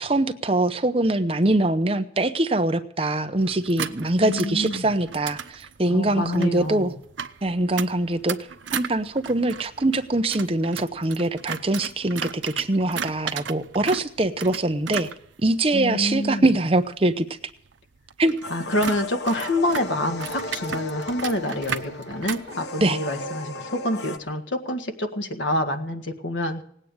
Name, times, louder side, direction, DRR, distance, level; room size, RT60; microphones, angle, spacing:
voice 1, 0.0-6.9 7.4-8.4 8.7-15.1 15.4-17.3 18.2-18.4 22.8-23.0, right 2 dB, 30° right, 9 dB, 0.8 m, -23 dB
sound 1, 3.4-22.6, right 7 dB, 85° right, 0.8 m, -36 dB
voice 2, 4.2-4.9 5.8-6.9 15.7-16.5 18.5-26.6, left 1 dB, 90° left, 5 dB, 1.8 m, -27 dB
sound 2, 18.4-24.2, left 2 dB, 65° left, 1.1 m, -36 dB
18.5 x 9.1 x 7.9 m, 0.68 s
head